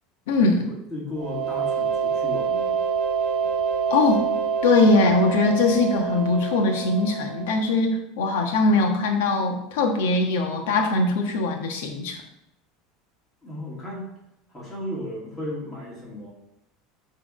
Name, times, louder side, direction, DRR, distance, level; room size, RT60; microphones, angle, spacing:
voice 1, 0.3-0.7 3.9-4.3 4.6-12.2, left 3 dB, 90° left, 3 dB, 1.3 m, -21 dB
voice 2, 0.9-2.8 13.4-14.2 14.5-16.3, left 1 dB, 15° left, -6 dB, 2.5 m, -34 dB
sound 1, 1.2-7.8, right 6 dB, 50° right, 1.2 m, -26 dB
7.5 x 3.6 x 5.0 m, 0.81 s
supercardioid pair, 160°, 0 cm